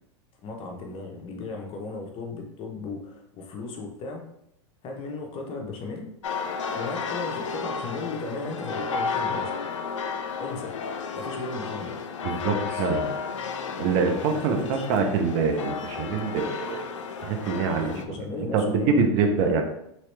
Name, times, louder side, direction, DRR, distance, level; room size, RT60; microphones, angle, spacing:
voice 1, 0.4-4.2 4.8-6.1 6.7-9.5 10.4-10.7 11.1-11.9 12.4-12.8 14.4-14.9 17.8-19.5, left 3 dB, 35° left, 2 dB, 0.7 m, -36 dB
sound 1, 6.2-18.0, left 5 dB, 80° left, 0.4 m, -32 dB
voice 2, 12.2-13.0 13.8-16.8 17.2-19.6, right 5 dB, 50° right, 4 dB, 0.6 m, -25 dB
3.0 x 2.9 x 3.2 m, 0.77 s
hypercardioid pair, 105°, 16 cm